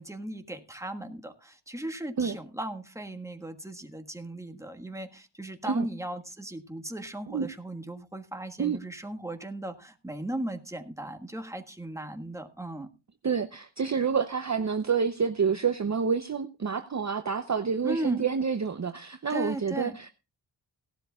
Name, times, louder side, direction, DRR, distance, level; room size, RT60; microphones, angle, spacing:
voice 1, 0.0-12.9 17.8-18.3 19.3-20.0, right 1 dB, 5° right, 5 dB, 1.5 m, -37 dB
voice 2, 13.2-20.1, right 6 dB, 40° right, 9 dB, 0.7 m, -28 dB
17.5 x 12.0 x 2.3 m, 0.30 s
wide cardioid pair, 110°, 45 cm